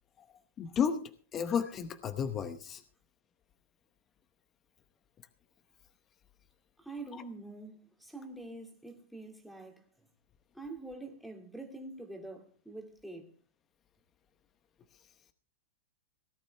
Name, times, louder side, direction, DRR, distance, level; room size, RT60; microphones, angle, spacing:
voice 1, 0.6-1.0 1.3-2.8, left 7 dB, 20° left, 0.8 m, -32 dB
voice 2, 6.8-9.8 10.5-13.3, right 2 dB, ahead, 2.4 m, -45 dB
18.5 x 12.5 x 3.4 m
supercardioid pair, 160°, 0 cm